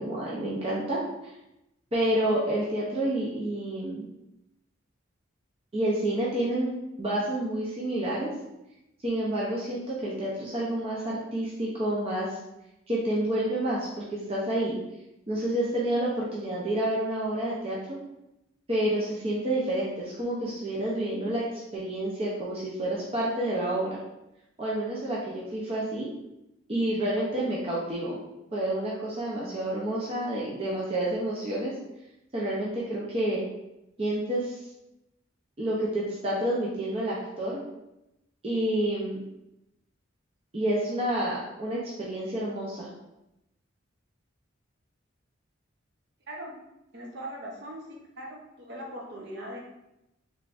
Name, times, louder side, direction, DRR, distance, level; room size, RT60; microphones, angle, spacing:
voice 1, 0.0-1.3 1.9-4.1 5.7-6.7 7.0-8.3 9.0-12.4 12.9-14.7 15.3-18.0 18.7-24.0 24.6-26.1 26.7-28.2 28.5-31.7 32.3-33.4 34.0-34.6 35.6-37.6 38.4-39.2 40.5-42.9, right 1 dB, 30° right, -6 dB, 0.6 m, -29 dB
voice 2, 46.3-46.6 46.9-49.6, right 1 dB, 55° right, -2 dB, 0.8 m, -40 dB
3.7 x 3.4 x 2.5 m, 0.89 s
head